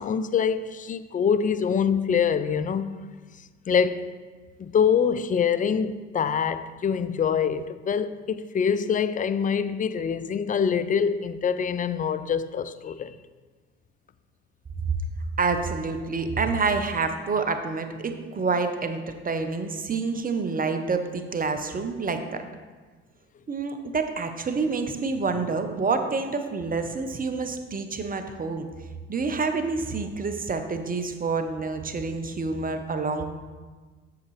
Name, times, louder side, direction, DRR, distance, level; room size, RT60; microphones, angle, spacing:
voice 1, 0.0-2.9 3.7-4.1 4.6-13.2, left 7 dB, 25° left, 0.4 m, -25 dB
voice 2, 15.4-22.4 23.5-28.7 29.1-33.2, right 4 dB, 25° right, 0.8 m, -28 dB
8.1 x 6.6 x 3.2 m
hypercardioid pair, 55°, 34 cm